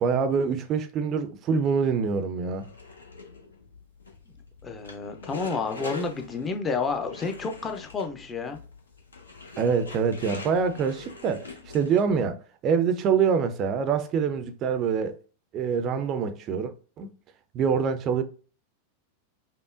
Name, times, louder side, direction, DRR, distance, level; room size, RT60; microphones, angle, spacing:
voice 1, 0.0-2.7 9.6-11.5 11.7-12.4 12.6-15.2 15.5-16.7 17.0-17.1 17.5-18.2, right 6 dB, 35° right, 0.5 m, -25 dB
sound 1, 2.5-12.3, left 3 dB, 75° left, 0.9 m, -44 dB
voice 2, 4.6-8.6, left 4 dB, 20° left, 0.6 m, -30 dB
5.4 x 2.1 x 2.4 m
figure-of-eight pair, 90°, 0 cm